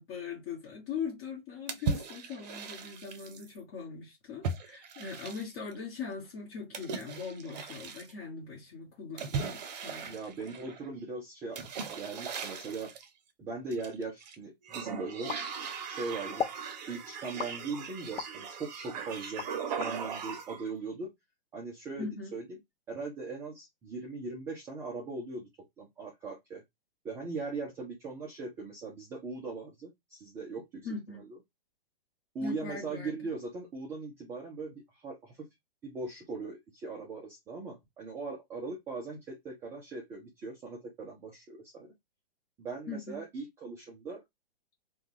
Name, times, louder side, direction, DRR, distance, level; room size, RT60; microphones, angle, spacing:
voice 1, 0.0-10.2 22.0-22.3 30.8-31.2 32.4-33.2 42.9-43.2, left 5 dB, 35° left, 1.3 m, -40 dB
sound 1, 1.7-3.5 4.4-5.7 6.7-8.1 9.2-10.9 11.5-13.1 13.7-14.3 14.7-20.7, right 5 dB, 45° right, 0.7 m, -38 dB
voice 2, 10.1-12.9 13.4-15.3 15.9-16.5 16.9-19.5 19.8-21.1 21.5-22.6 22.9-25.5 25.8-26.6 27.0-30.9 31.1-31.4 32.3-35.4 35.8-41.9 42.6-44.2, right 3 dB, 10° right, 0.4 m, -40 dB
sound 2, 15.3-16.0 16.4-16.7 17.4-18.4 18.9-19.9, left 8 dB, 80° left, 0.5 m, -37 dB
3.3 x 2.3 x 3.0 m
hypercardioid pair, 135°, 30 cm